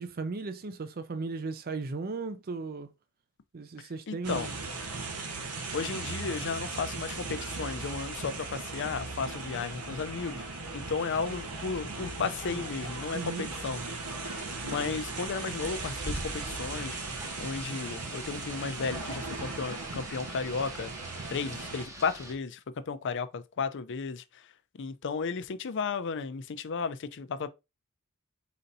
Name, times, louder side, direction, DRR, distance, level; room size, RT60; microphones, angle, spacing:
voice 1, 0.0-2.9 3.5-4.6 13.1-13.5, right 4 dB, 40° right, 0.5 m, -36 dB
voice 2, 3.8-4.5 5.7-10.4 10.7-13.8 14.3-17.0 17.4-20.9 21.3-22.6 22.9-24.5 24.7-27.5, left 5 dB, 55° left, 0.5 m, -34 dB
sound 1, 4.2-21.9, right 3 dB, 85° right, 1.1 m, -38 dB
Rain, 15.6-22.3, right 1 dB, 15° right, 0.8 m, -44 dB
4.3 x 4.0 x 2.6 m
head